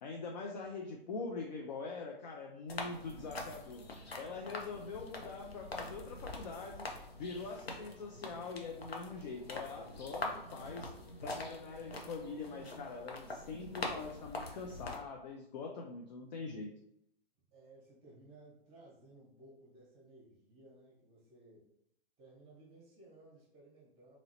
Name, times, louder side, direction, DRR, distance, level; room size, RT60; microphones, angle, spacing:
voice 1, 0.0-3.8 4.2-6.9 7.1-10.9 11.2-16.7, left 4 dB, 50° left, 2 dB, 0.5 m, -43 dB
sound 1, 2.7-15.0, left 2 dB, 85° left, 0.7 m, -44 dB
voice 2, 17.5-21.7 22.2-24.2, right 2 dB, 20° right, -5 dB, 0.9 m, -59 dB
2.9 x 2.8 x 2.8 m, 0.75 s
figure-of-eight pair, 120°, 30 cm